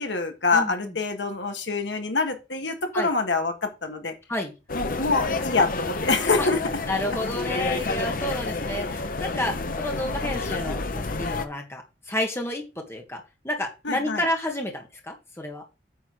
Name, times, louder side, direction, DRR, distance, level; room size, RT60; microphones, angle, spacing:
voice 1, 0.0-4.1 4.7-6.8 13.8-14.3, left 3 dB, 75° left, 5 dB, 1.7 m, -25 dB
voice 2, 0.5-0.9 2.9-3.1 4.3-4.5 6.4-6.5 6.9-15.6, left 1 dB, 15° left, 2 dB, 1.7 m, -30 dB
sound 1, 4.7-11.5, left 3 dB, 50° left, 0.8 m, -29 dB
9.3 x 4.0 x 6.2 m, 0.28 s
head